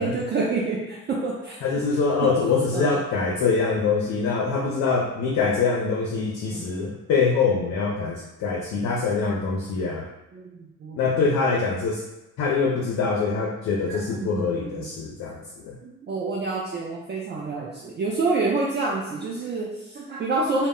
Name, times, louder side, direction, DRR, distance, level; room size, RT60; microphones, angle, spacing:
voice 1, 0.0-1.6 2.2-2.3 2.7-2.9 6.5-6.7 10.3-11.2 13.9-14.9 15.8-20.7, right 3 dB, 35° right, -4 dB, 0.4 m, -28 dB
voice 2, 1.6-10.1 11.0-12.0 12.4-15.8, left 4 dB, 65° left, -2 dB, 0.5 m, -24 dB
2.0 x 2.0 x 3.6 m, 0.94 s
cardioid pair, 90°, 30 cm